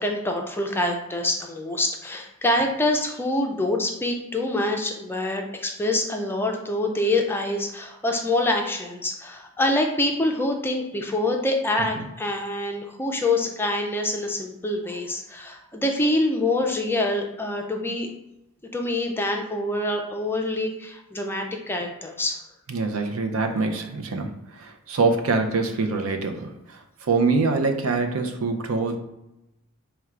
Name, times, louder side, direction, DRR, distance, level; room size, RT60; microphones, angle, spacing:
voice 1, 0.0-18.1 18.7-22.4, left 1 dB, 10° left, 2 dB, 0.4 m, -25 dB
voice 2, 22.7-24.3 24.6-29.0, right 3 dB, 75° right, 5 dB, 0.5 m, -24 dB
4.4 x 2.2 x 3.6 m, 0.92 s
head